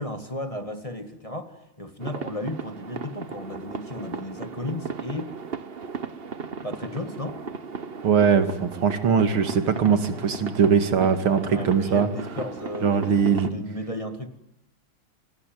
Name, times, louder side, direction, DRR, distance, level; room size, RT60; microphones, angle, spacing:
voice 1, 0.0-5.3 6.6-7.4 11.5-14.3, left 1 dB, 15° left, 7 dB, 1.9 m, -34 dB
sound 1, 2.0-13.5, right 5 dB, 35° right, 1.2 m, -36 dB
voice 2, 8.0-12.1 12.8-13.5, right 6 dB, 90° right, 9 dB, 2.9 m, -21 dB
29.0 x 22.0 x 9.2 m, 0.84 s
omnidirectional pair, 2.2 m